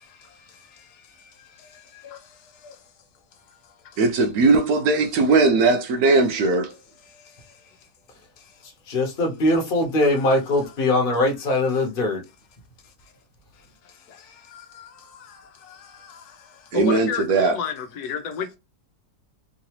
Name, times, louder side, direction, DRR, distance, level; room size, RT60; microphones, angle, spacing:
voice 1, 4.0-6.7 16.7-17.5, right 3 dB, 75° right, 1.1 m, -19 dB
voice 2, 8.9-12.2, left 2 dB, 40° left, 1.2 m, -21 dB
voice 3, 16.7-18.6, left 6 dB, 80° left, 1.3 m, -29 dB
3.8 x 2.7 x 2.9 m
omnidirectional pair, 1.6 m